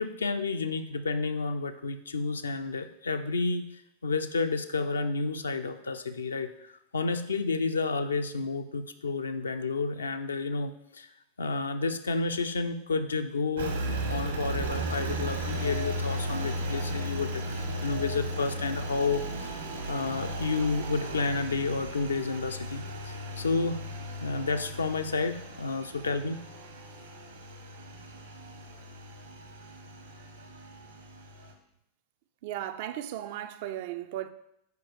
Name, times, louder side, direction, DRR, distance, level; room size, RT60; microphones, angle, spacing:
voice 1, 0.0-3.7 4.0-11.1 11.4-23.8 24.2-26.4, left 4 dB, 75° left, 0.5 m, -31 dB
Engine, 13.6-31.5, right 1 dB, 70° right, 1.3 m, -36 dB
voice 2, 32.4-34.3, right 12 dB, 50° right, 0.4 m, -36 dB
5.8 x 4.7 x 4.6 m
figure-of-eight pair, 90°, 0 cm